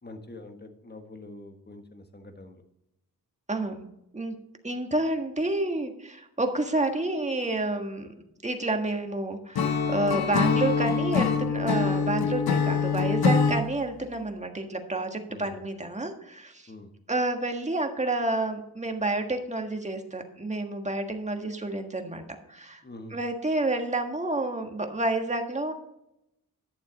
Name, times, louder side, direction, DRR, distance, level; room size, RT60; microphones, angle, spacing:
voice 1, 0.0-2.6 15.3-15.6 16.7-16.9 22.8-23.2, left 2 dB, 30° left, 6 dB, 1.5 m, -45 dB
voice 2, 3.5-4.3 4.6-8.1 8.4-16.7 17.1-22.2 22.5-22.8 23.1-25.7, right 2 dB, 20° right, 4 dB, 1.6 m, -29 dB
Acoustic guitar / Strum, 9.6-13.7, left 5 dB, 90° left, 0.9 m, -24 dB
11.5 x 7.0 x 4.1 m, 0.83 s
cardioid pair, 80°, 36 cm